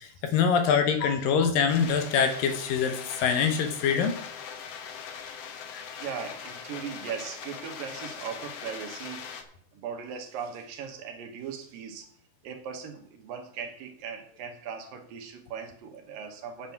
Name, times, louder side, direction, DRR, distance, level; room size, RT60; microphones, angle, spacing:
voice 1, 0.0-4.2 5.7-5.8, left 6 dB, 70° left, 7 dB, 2.7 m, -24 dB
sound 1, 1.7-9.4, left 7 dB, 85° left, 1.4 m, -41 dB
voice 2, 6.0-9.4 9.7-12.1 12.4-16.7, right 7 dB, 70° right, 5 dB, 2.7 m, -39 dB
8.8 x 8.2 x 5.9 m, 0.62 s
omnidirectional pair, 4.5 m